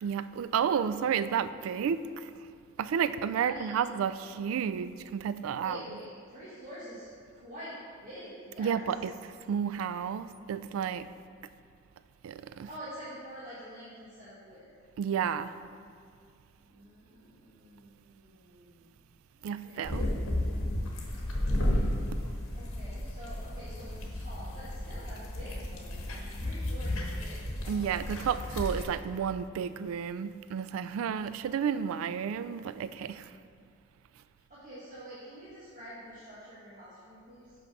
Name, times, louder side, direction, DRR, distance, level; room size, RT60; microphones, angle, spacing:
voice 1, 0.0-2.3 2.8-5.8 8.6-11.1 12.2-12.7 15.0-15.5 19.4-20.1 27.7-33.3, right 7 dB, 75° right, 0.3 m, -31 dB
voice 2, 3.3-3.9 5.3-8.8 12.6-14.7 16.6-18.9 19.3-20.9 22.5-28.0 34.5-37.5, equal, 40° right, 1.4 m, -47 dB
sound 1, 19.8-28.8, left 1 dB, 90° left, 1.2 m, -33 dB
5.7 x 5.2 x 6.0 m
head